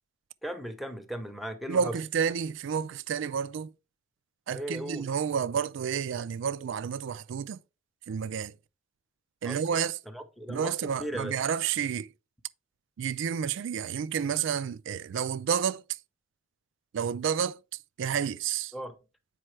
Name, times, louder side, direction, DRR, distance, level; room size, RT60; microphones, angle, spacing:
voice 1, 0.4-2.0 4.5-5.1 9.4-9.8 10.1-11.4 18.7-18.9, right 1 dB, ahead, 0.7 m, -37 dB
voice 2, 1.7-3.7 4.5-7.6 8.1-8.5 9.4-10.0 10.5-12.1 13.0-15.8 16.9-17.6 18.0-18.7, right 7 dB, 65° right, 0.3 m, -30 dB
7.5 x 5.4 x 3.2 m
head